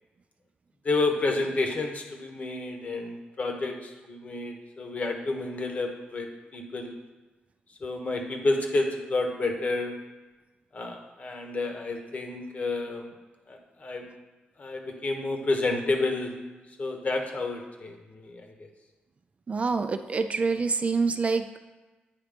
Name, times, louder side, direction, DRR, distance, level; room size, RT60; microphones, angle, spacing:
voice 1, 0.8-6.3 6.5-6.9 7.8-9.9 10.7-13.1 13.5-14.0 14.6-16.3 16.8-18.7, left 2 dB, 40° left, 3 dB, 1.0 m, -30 dB
voice 2, 19.5-21.6, right 4 dB, 40° right, 9 dB, 0.3 m, -26 dB
8.8 x 3.0 x 5.0 m, 1.2 s
wide cardioid pair, 105°, 4 cm